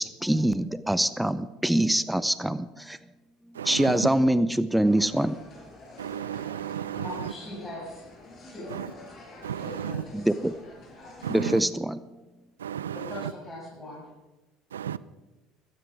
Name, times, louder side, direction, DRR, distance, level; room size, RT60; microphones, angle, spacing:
voice 1, 0.0-3.0 3.6-5.4 10.1-10.5 11.3-12.0, right 1 dB, 5° right, 0.6 m, -24 dB
voice 2, 3.6-4.1 6.0-7.0 8.7-8.9 9.4-10.0 11.2-11.5 12.6-13.3 14.7-15.0, right 10 dB, 85° right, 0.4 m, -33 dB
sound 1, 4.8-11.4, left 2 dB, 45° left, 5.8 m, -47 dB
voice 3, 6.9-8.1 8.5-8.7 9.6-10.3 12.9-14.1, left 1 dB, 20° left, 6.9 m, -40 dB
15.0 x 14.5 x 4.9 m
hypercardioid pair, 65°, 0 cm